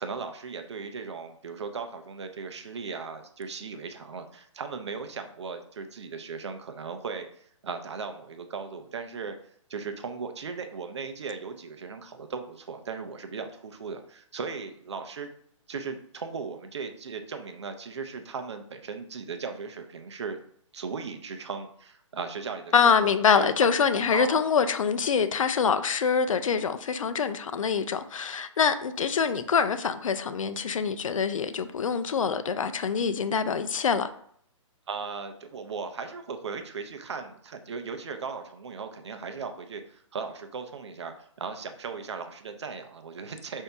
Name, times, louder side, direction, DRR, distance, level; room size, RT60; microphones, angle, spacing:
voice 1, 0.0-9.4 9.7-15.3 15.7-20.4 20.7-23.7 24.1-24.4 34.9-43.6, right 5 dB, 60° right, 0.6 m, -37 dB
voice 2, 22.7-34.1, left 6 dB, 80° left, 0.5 m, -25 dB
5.4 x 2.7 x 3.4 m
hypercardioid pair, 170°, 17 cm